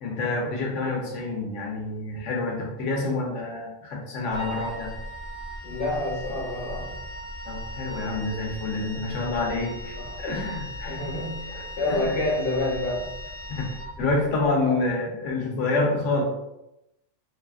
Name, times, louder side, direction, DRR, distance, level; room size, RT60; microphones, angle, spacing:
voice 1, 0.0-4.9 7.4-11.0 11.5-12.2 13.5-16.2, left 3 dB, 80° left, -1 dB, 1.0 m, -28 dB
Wind instrument woodwind instrument, 4.3-14.4, equal, 45° right, 0.4 m, -38 dB
voice 2, 5.6-6.9 10.1-10.2 10.9-13.1 14.6-14.8, left 2 dB, 55° left, -3 dB, 0.9 m, -28 dB
2.7 x 2.4 x 2.2 m, 0.90 s
omnidirectional pair, 1.3 m